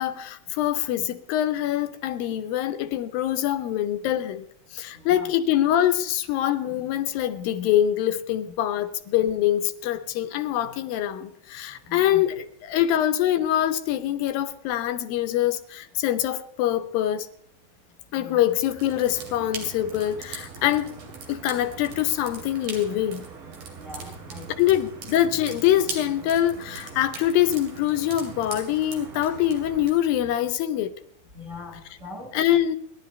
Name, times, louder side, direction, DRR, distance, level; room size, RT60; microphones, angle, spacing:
voice 1, 0.0-4.5 4.7-17.3 18.1-21.0 21.3-23.2 24.5-30.9 32.3-32.8, left 12 dB, 85° left, 2.6 m, -24 dB
voice 2, 4.9-5.3 11.9-12.2 18.1-18.4 23.8-24.7 31.3-32.4, left 3 dB, 30° right, 1.4 m, -41 dB
sound 1, 18.4-29.9, right 4 dB, 90° right, 4.4 m, -40 dB
29.5 x 11.5 x 3.2 m
omnidirectional pair, 4.0 m